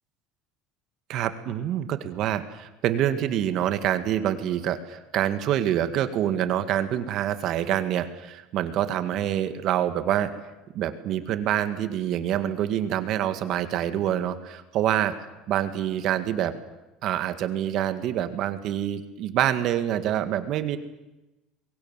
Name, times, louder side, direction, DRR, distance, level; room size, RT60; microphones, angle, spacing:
voice 1, 1.1-10.3 10.7-15.1 15.5-16.5 17.0-20.8, right 11 dB, 50° right, 9 dB, 2.0 m, -26 dB
27.5 x 22.5 x 7.5 m, 0.99 s
cardioid pair, 145°, 0 cm